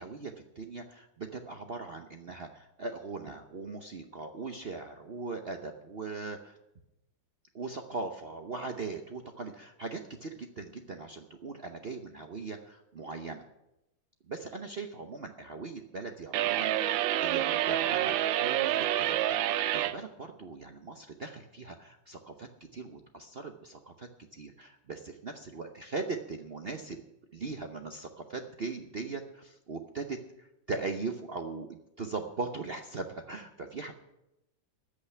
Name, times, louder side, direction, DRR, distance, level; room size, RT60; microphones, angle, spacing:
voice 1, 0.0-6.6 7.5-13.4 14.3-27.0 27.3-33.9, right 4 dB, 50° right, 5 dB, 0.7 m, -40 dB
sound 1, 16.3-20.0, right 13 dB, 85° right, 1.4 m, -28 dB
14.0 x 6.6 x 9.9 m, 0.90 s
omnidirectional pair, 2.1 m